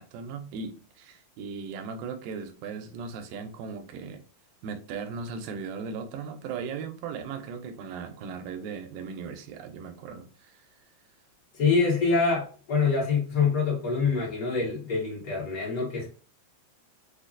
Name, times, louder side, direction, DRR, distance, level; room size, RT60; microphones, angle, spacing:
voice 1, 0.0-4.2 4.6-10.7, right 5 dB, 80° right, 2.2 m, -37 dB
voice 2, 11.5-16.1, left 4 dB, 45° left, 1.1 m, -25 dB
5.7 x 2.3 x 2.5 m
omnidirectional pair, 4.2 m